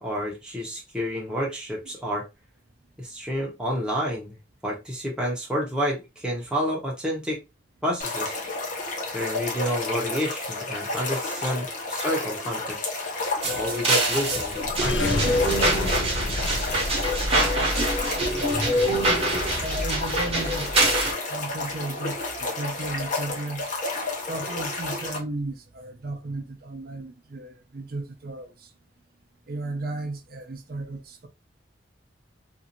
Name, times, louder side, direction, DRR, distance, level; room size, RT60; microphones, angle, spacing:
voice 1, 0.0-2.2 3.0-4.4 4.6-7.4 7.8-8.4 9.1-12.9 13.5-15.5, equal, 5° right, 0.7 m, -29 dB
sound 1, 8.0-25.2, left 2 dB, 45° left, 0.7 m, -31 dB
sound 2, 13.4-21.1, right 1 dB, 35° right, 0.8 m, -24 dB
sound 3, 14.5-19.5, left 2 dB, 85° left, 0.5 m, -32 dB
voice 2, 19.5-20.7 21.3-23.7 24.3-28.5 29.5-31.3, right 2 dB, 55° right, 0.5 m, -34 dB
2.6 x 2.4 x 2.8 m
head